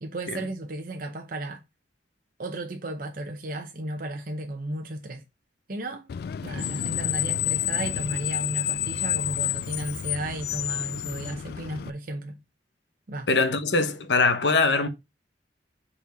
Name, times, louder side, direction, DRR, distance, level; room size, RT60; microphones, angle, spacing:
voice 1, 0.0-1.6 2.4-5.2 5.7-6.1 6.4-12.4 13.1-13.3, right 1 dB, 50° right, 0.8 m, -34 dB
Screech, 6.1-11.9, left 12 dB, 60° left, 0.3 m, -29 dB
voice 2, 13.3-14.9, left 3 dB, 80° left, 1.1 m, -22 dB
5.2 x 4.3 x 5.0 m
head